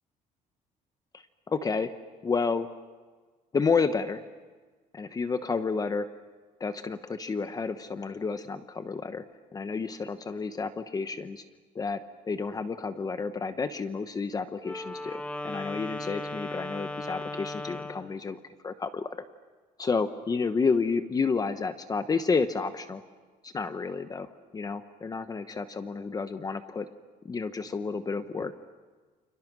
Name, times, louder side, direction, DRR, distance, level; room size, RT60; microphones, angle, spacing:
voice 1, 1.1-1.9 2.2-2.7 3.5-4.2 4.9-6.1 6.6-9.2 9.5-11.4 11.7-19.2 19.8-23.0 23.4-26.9 27.2-28.5, left 4 dB, 25° left, 10 dB, 1.0 m, -30 dB
Wind instrument woodwind instrument, 14.6-18.1, left 2 dB, 10° left, 1.6 m, -37 dB
30.0 x 28.5 x 6.2 m, 1.4 s
cardioid pair, 135°, 15 cm